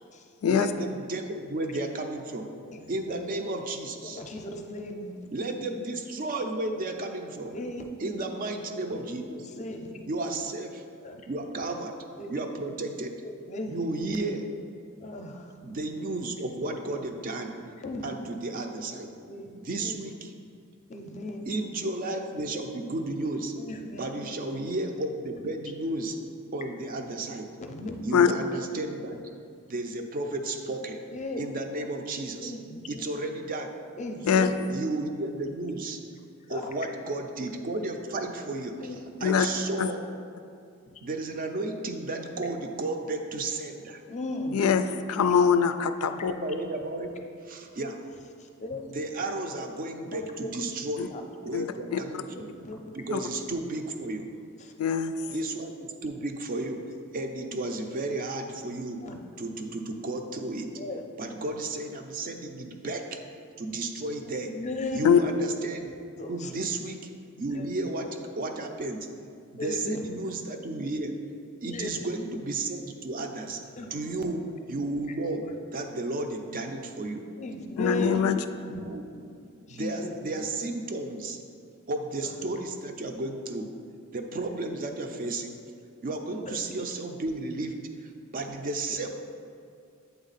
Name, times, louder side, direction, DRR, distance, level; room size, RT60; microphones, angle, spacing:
voice 1, 0.5-2.5 2.9-4.2 5.3-7.5 8.0-9.5 10.1-10.8 11.3-11.9 12.3-13.2 13.7-14.4 15.6-17.5 18.0-19.1 19.5-20.3 21.5-23.5 24.0-26.2 26.5-27.5 28.0-29.2 29.7-31.0 31.4-32.5 32.9-33.7 34.7-36.0 36.5-40.0 41.0-44.0 46.1-47.1 47.4-48.0 48.9-51.1 51.4-52.5 52.9-54.3 55.3-56.8 57.1-59.0 59.4-60.7 61.2-63.2 63.6-64.5 64.9-65.9 66.3-67.0 67.4-68.1 68.4-69.0 69.5-71.1 71.6-73.6 73.9-74.4 74.7-75.4 75.7-77.2 78.7-79.0 79.7-81.4 81.9-83.7 84.1-85.5 86.0-87.7 88.0-89.1, right 2 dB, 40° right, 5 dB, 0.5 m, -33 dB
voice 2, 2.7-3.1 4.0-5.2 7.4-7.8 9.3-10.0 11.0-11.3 12.2-12.3 13.2-13.8 15.0-15.5 17.8-18.1 19.3-19.9 20.9-21.4 23.6-24.1 27.6-28.0 31.1-31.4 32.4-33.0 34.0-34.5 36.5-36.6 38.8-39.0 40.9-41.0 44.1-44.6 47.1-47.2 48.4-48.8 50.1-50.5 51.1-51.2 52.3-53.0 54.6-54.7 59.0-59.2 60.8-61.0 64.2-65.1 66.2-66.5 67.5-67.6 69.6-70.1 71.7-72.1 73.8-74.0 77.4-78.2 78.9-79.3 79.7-80.2 82.2-82.3 86.4-86.6, left 1 dB, 35° left, 4 dB, 0.5 m, -37 dB
voice 3, 44.5-44.8 45.1-46.3 51.0-51.1 51.5-52.0 53.1-53.2 54.8-55.1 65.0-65.2 77.8-78.4, left 7 dB, 90° left, 9 dB, 0.3 m, -23 dB
8.0 x 3.6 x 4.0 m, 2.3 s
head